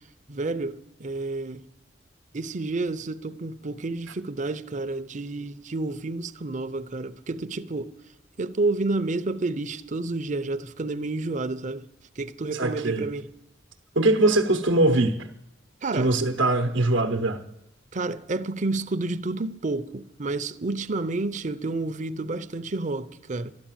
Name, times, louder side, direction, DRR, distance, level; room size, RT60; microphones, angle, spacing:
voice 1, 0.3-1.7 2.3-7.9 8.4-11.8 12.2-13.3 15.8-16.1 17.9-23.5, right 3 dB, 40° right, 0.7 m, -30 dB
voice 2, 12.5-13.1 14.0-15.2 15.9-17.4, right 2 dB, 80° right, 0.9 m, -22 dB
13.0 x 11.5 x 9.0 m
head